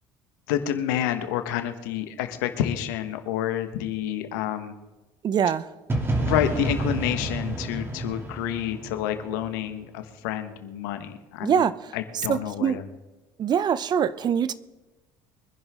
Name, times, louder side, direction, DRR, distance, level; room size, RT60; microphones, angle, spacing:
voice 1, 0.5-4.7 6.2-12.9, left 11 dB, 80° left, 1.5 m, -29 dB
voice 2, 5.2-5.6 11.4-11.7 12.3-12.8 13.4-14.5, right 8 dB, 45° right, 0.8 m, -23 dB
sound 1, 5.9-9.8, right 1 dB, 20° right, 2.9 m, -29 dB
24.5 x 10.5 x 3.7 m
supercardioid pair, 80°, 10 cm